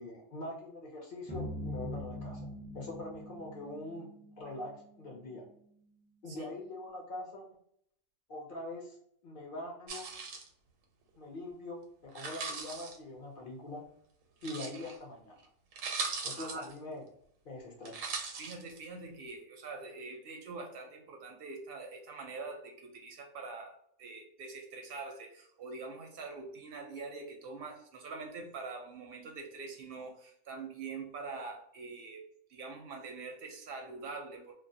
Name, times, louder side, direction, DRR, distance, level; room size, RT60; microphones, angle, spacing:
voice 1, 0.0-4.1 4.4-5.4 6.2-7.4 8.3-9.0 9.2-10.1 11.2-13.8 14.4-15.4 16.2-17.0 17.4-18.0, left 2 dB, 55° left, -1 dB, 0.6 m, -43 dB
sound 1, 1.3-5.7, left 1 dB, 10° left, 0.4 m, -43 dB
sound 2, 9.9-10.5 12.1-13.0 14.4-15.0 15.4-15.5 15.7-16.7 17.8-18.8, right 4 dB, 85° right, 1.0 m, -39 dB
voice 2, 16.3-16.7 18.4-32.2 32.5-34.5, right 4 dB, 60° right, 2 dB, 0.6 m, -44 dB
2.3 x 2.1 x 2.6 m, 0.68 s
omnidirectional pair, 1.3 m